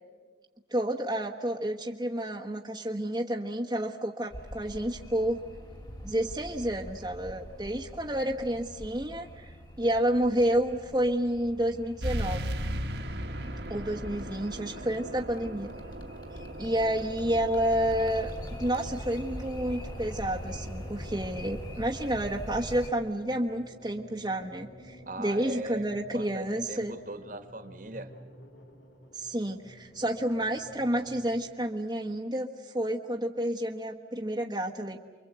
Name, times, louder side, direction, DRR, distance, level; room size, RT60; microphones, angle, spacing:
voice 1, 0.7-5.4 6.0-12.5 13.7-15.7 16.6-26.9 29.1-35.0, right 1 dB, 20° right, 0 dB, 1.2 m, -30 dB
sound 1, 4.3-22.9, equal, 25° left, 2.6 m, -43 dB
sound 2, 12.0-27.1, right 1 dB, 65° right, 1.6 m, -40 dB
sound 3, 19.7-31.4, equal, 80° left, 3.1 m, -52 dB
voice 2, 25.1-25.9 26.1-28.1, right 2 dB, 45° right, 8 dB, 1.6 m, -40 dB
29.0 x 24.0 x 8.1 m, 1.5 s
head